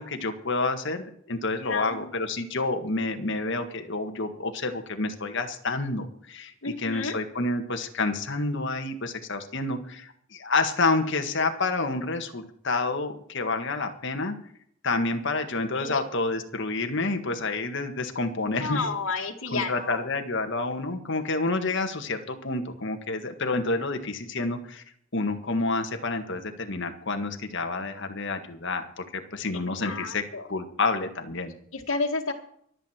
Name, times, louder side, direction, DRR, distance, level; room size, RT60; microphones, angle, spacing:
voice 1, 0.0-14.4 14.8-18.9 19.5-24.8 25.1-30.2 30.5-31.5, left 3 dB, 60° left, 6 dB, 1.8 m, -29 dB
voice 2, 1.6-2.2 6.6-7.2 15.7-16.0 18.6-20.0 29.8-30.5 31.7-32.3, left 4 dB, 85° left, -1 dB, 2.0 m, -31 dB
24.5 x 8.3 x 4.5 m, 0.65 s
head